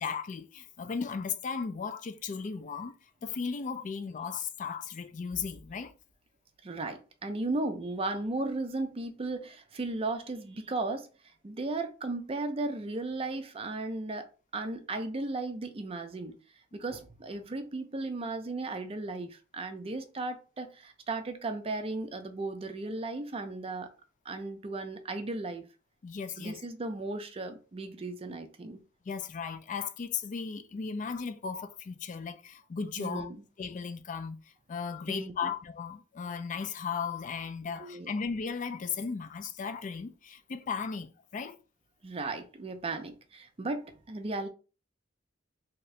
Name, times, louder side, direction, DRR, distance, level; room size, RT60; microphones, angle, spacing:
voice 1, 0.0-2.9 3.2-5.9 26.0-26.6 29.0-33.3 33.6-41.6, left 5 dB, 40° left, 0.3 m, -36 dB
voice 2, 6.6-11.1 11.4-14.3 14.5-16.3 16.7-23.9 24.3-25.6 26.4-28.8 33.0-33.4 35.1-35.5 37.8-38.1 42.0-44.5, right 2 dB, 30° right, 0.5 m, -35 dB
2.8 x 2.6 x 3.2 m
head